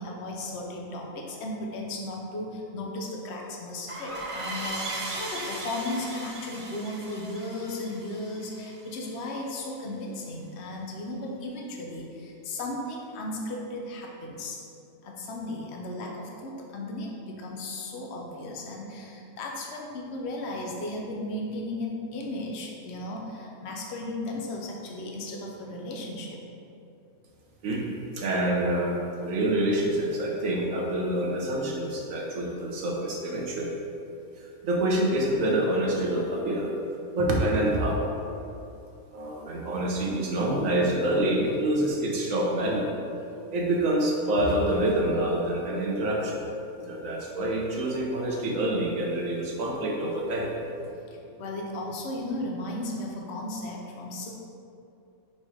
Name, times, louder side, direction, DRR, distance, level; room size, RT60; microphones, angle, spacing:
voice 1, 0.0-14.6 15.0-26.4 50.9-54.3, left 1 dB, 55° left, -1 dB, 1.0 m, -35 dB
sound 1, 3.9-9.2, right 2 dB, 35° right, 0.6 m, -37 dB
voice 2, 27.6-33.8 34.4-36.7 37.1-38.0 39.1-42.9 43.5-46.4 46.8-50.5, right 1 dB, 70° right, -2 dB, 1.3 m, -27 dB
5.1 x 4.2 x 4.9 m, 2.6 s
omnidirectional pair, 1.5 m